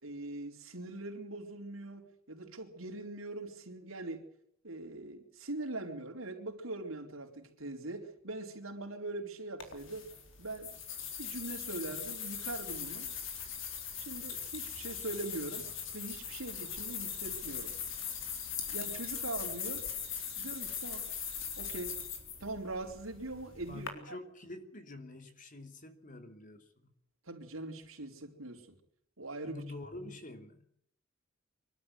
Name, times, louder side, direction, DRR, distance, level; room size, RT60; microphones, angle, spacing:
voice 1, 0.0-4.2 4.6-10.1 10.4-10.7 11.2-13.1 14.0-15.7 15.9-17.7 18.7-19.9 20.4-21.1 21.6-22.0 22.4-24.2 27.3-28.7 29.2-29.6, right 2 dB, 85° right, 4.4 m, -42 dB
sound 1, 9.6-23.9, left 7 dB, 65° left, 3.9 m, -40 dB
voice 2, 23.7-26.9 29.4-30.7, left 2 dB, 40° left, 2.9 m, -47 dB
25.0 x 12.5 x 9.5 m
head